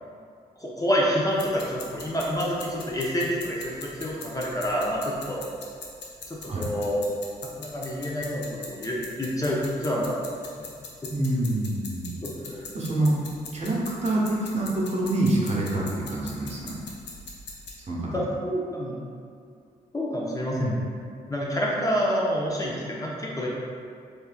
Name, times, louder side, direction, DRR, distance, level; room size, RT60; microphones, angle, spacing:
voice 1, 0.6-5.4 6.3-7.0 7.6-10.2 10.6-10.7 12.2-12.6 18.1-19.0 19.9-20.8 21.3-23.5, equal, 20° left, -5 dB, 0.7 m, -28 dB
sound 1, 1.3-17.8, left 4 dB, 65° left, 0.6 m, -43 dB
voice 2, 6.4-6.7 11.1-12.2 12.5-13.2 13.5-16.8 17.9-18.3 20.5-20.8, right 1 dB, 35° right, -5 dB, 0.8 m, -26 dB
3.3 x 3.2 x 2.3 m, 2.2 s
hypercardioid pair, 40°, 19 cm